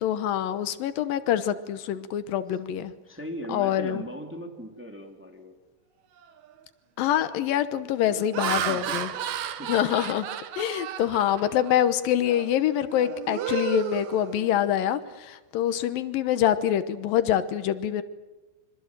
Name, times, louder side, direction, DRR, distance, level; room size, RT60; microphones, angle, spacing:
voice 1, 0.0-2.9 3.5-4.0 7.0-9.1 9.7-10.3 10.6-18.0, left 10 dB, 85° left, 12 dB, 2.8 m, -25 dB
voice 2, 3.1-5.5 8.5-9.0 9.6-9.7, equal, 5° right, 3 dB, 2.4 m, -39 dB
Laughter, 6.2-6.5 7.1-7.4 8.0-11.8 12.3-12.5 12.9-14.8, right 9 dB, 65° right, 2.4 m, -33 dB
26.5 x 25.5 x 7.5 m, 1.1 s
omnidirectional pair, 3.9 m